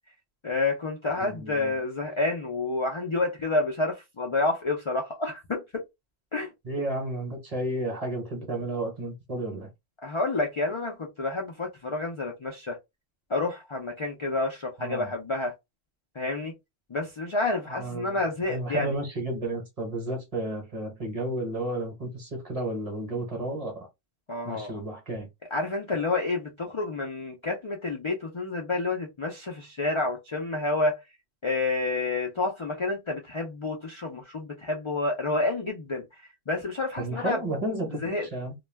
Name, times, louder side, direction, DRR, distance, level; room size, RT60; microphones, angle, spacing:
voice 1, 0.4-5.6 6.3-6.5 10.0-12.8 13.3-15.5 16.2-16.5 16.9-19.0 24.3-24.8 25.5-31.0 31.4-36.0 36.5-37.4 38.0-38.3, left 2 dB, 55° left, 0.3 m, -29 dB
voice 2, 1.2-1.7 6.6-9.7 14.8-15.1 17.7-18.2 18.5-23.9 24.4-25.3 37.0-38.5, right 1 dB, 35° right, 0.8 m, -32 dB
2.3 x 2.2 x 3.2 m
omnidirectional pair, 1.2 m